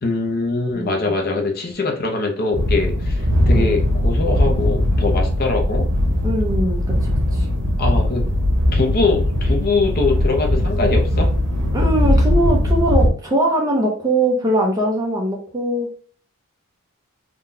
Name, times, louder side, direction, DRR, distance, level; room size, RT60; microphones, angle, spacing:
voice 1, 0.0-5.9 7.8-8.3 8.7-11.3, left 3 dB, 45° left, 2 dB, 0.7 m, -22 dB
voice 2, 0.7-1.1 3.5-3.8 6.2-7.5 11.7-16.0, right 1 dB, 15° right, 0 dB, 0.6 m, -21 dB
sound 1, 2.5-13.1, left 1 dB, 80° right, 1.1 m, -19 dB
3.8 x 2.3 x 2.6 m, 0.43 s
head